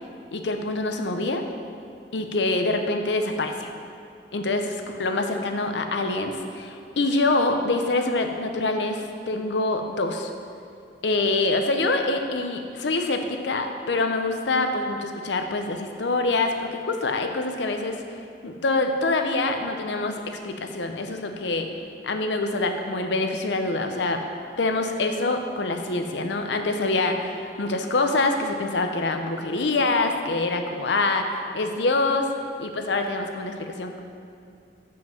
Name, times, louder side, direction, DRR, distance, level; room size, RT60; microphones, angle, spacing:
voice 1, 0.3-1.4 2.1-3.7 4.3-10.3 11.0-18.0 18.4-21.7 22.0-24.2 24.6-32.3 32.6-34.0, left 2 dB, 80° left, 5 dB, 0.7 m, -25 dB
7.5 x 5.3 x 5.8 m, 2.5 s
head